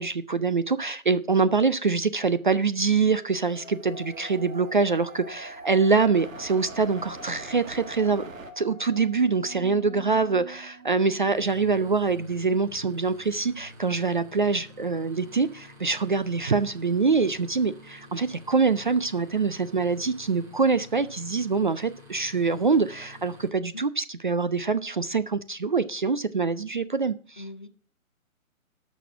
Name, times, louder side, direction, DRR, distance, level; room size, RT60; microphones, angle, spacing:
voice 1, 0.0-8.2 8.6-27.4, right 4 dB, 35° right, 0.4 m, -25 dB
sound 1, 3.0-11.4, equal, 85° right, 2.0 m, -45 dB
sound 2, 3.4-8.5, right 4 dB, 65° right, 2.1 m, -45 dB
sound 3, 11.2-23.5, left 1 dB, 5° right, 1.0 m, -49 dB
voice 2, 27.4-27.7, left 1 dB, 20° left, 0.4 m, -42 dB
12.0 x 6.2 x 5.9 m
hypercardioid pair, 155°, 42 cm